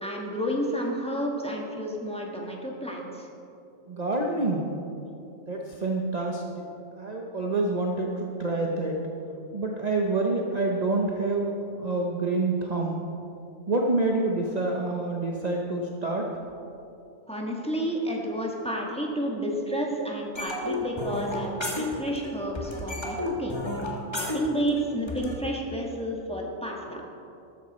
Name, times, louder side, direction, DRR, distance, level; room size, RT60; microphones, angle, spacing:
voice 1, 0.0-3.3 17.3-23.6 23.9-27.0, equal, 5° left, -1 dB, 1.6 m, -31 dB
voice 2, 3.9-4.7 5.5-6.6 7.0-9.0 9.5-13.0 13.7-16.3 24.1-24.2, right 2 dB, 35° right, 0 dB, 1.0 m, -27 dB
sound 1, 20.4-22.3 22.6-25.3, left 2 dB, 20° left, 1.8 m, -31 dB
14.0 x 13.0 x 4.2 m, 2.8 s
omnidirectional pair, 1.3 m